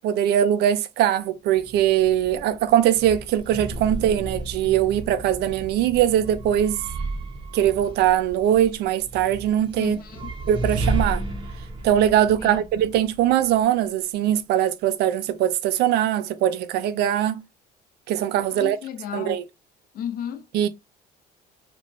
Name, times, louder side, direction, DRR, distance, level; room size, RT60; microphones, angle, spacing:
voice 1, 0.0-6.9 7.5-10.0 10.5-11.2 11.8-17.4 18.1-18.8 19.1-19.4 20.5-20.7, right 11 dB, 75° right, 0.4 m, -21 dB
sound 1, 1.5-13.6, right 2 dB, 30° right, 0.6 m, -33 dB
voice 2, 9.8-10.3 12.4-12.6 18.5-19.4 19.9-20.5, left 9 dB, 60° left, 0.5 m, -33 dB
3.0 x 2.1 x 2.5 m
cardioid pair, 110°, 17 cm